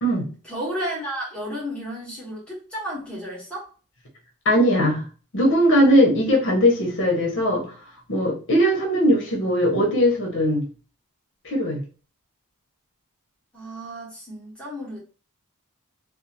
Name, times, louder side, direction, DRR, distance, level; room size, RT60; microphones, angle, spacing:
voice 1, 0.4-3.7 13.5-15.0, equal, 5° left, -6 dB, 1.2 m, -32 dB
voice 2, 4.4-5.0 5.3-7.6 8.1-10.6 11.4-11.8, equal, 55° left, -1 dB, 1.0 m, -19 dB
2.6 x 2.0 x 2.8 m, 0.37 s
head